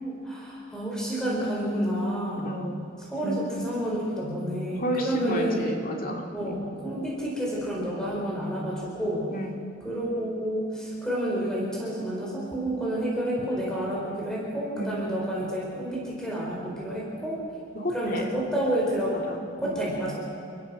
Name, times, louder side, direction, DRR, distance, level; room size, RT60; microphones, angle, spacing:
voice 1, 0.0-2.6 3.0-5.7 6.3-9.3 9.8-17.4 17.9-19.2 19.6-20.2, right 1 dB, 5° left, -5 dB, 4.8 m, -29 dB
voice 2, 2.4-2.8 3.2-3.4 4.7-6.6 9.3-9.5 14.8-15.0 17.7-18.3 19.1-19.8, equal, 45° left, 2 dB, 2.4 m, -31 dB
29.5 x 14.0 x 6.3 m, 2.5 s
head